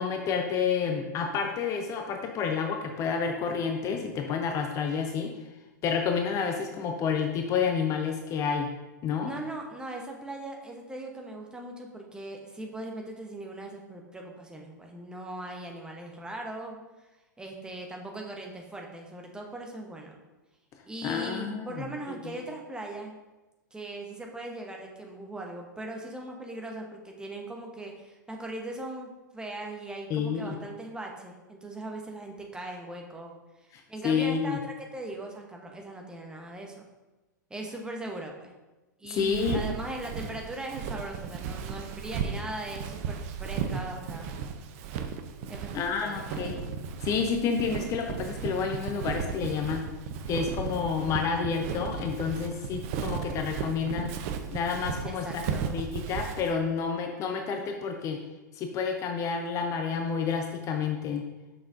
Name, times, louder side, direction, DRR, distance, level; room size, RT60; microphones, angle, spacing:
voice 1, 0.0-5.3 5.8-8.7 9.0-9.3 21.0-21.9 22.2-22.4 30.1-30.6 33.7-34.6 39.1-39.6 45.7-46.6 47.0-49.8 50.3-54.1 54.5-58.2 58.5-61.2, left 6 dB, 30° left, 3 dB, 0.6 m, -29 dB
voice 2, 9.2-16.8 17.4-20.2 20.8-23.2 23.7-33.3 33.6-36.9 37.5-38.5 39.0-44.3 45.5-46.3 55.0-55.7, right 2 dB, 10° right, 1 dB, 1.0 m, -39 dB
Walk footsteps, 39.2-56.5, right 6 dB, 45° right, 0.6 m, -35 dB
6.7 x 5.5 x 2.6 m, 1.1 s
figure-of-eight pair, 100°, 10 cm